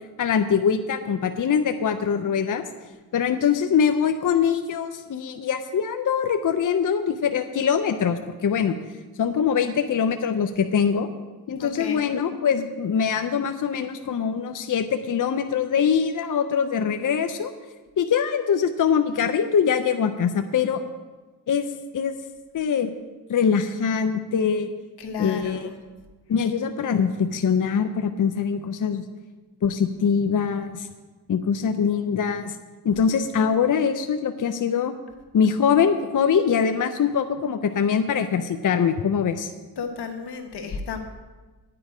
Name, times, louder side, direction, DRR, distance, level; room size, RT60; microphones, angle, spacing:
voice 1, 0.2-2.6 3.1-8.8 9.2-11.1 11.5-17.5 18.0-20.8 21.5-21.6 21.9-22.1 22.5-22.9 23.3-24.7 25.2-25.7 26.3-29.0 29.6-30.9 31.3-32.6 32.8-34.9 35.3-39.5, left 7 dB, 55° left, 8 dB, 0.7 m, -23 dB
voice 2, 11.6-12.1 25.0-25.7 39.8-41.0, left 5 dB, 85° left, 5 dB, 1.5 m, -33 dB
10.0 x 9.7 x 5.0 m, 1.3 s
cardioid pair, 55°, 39 cm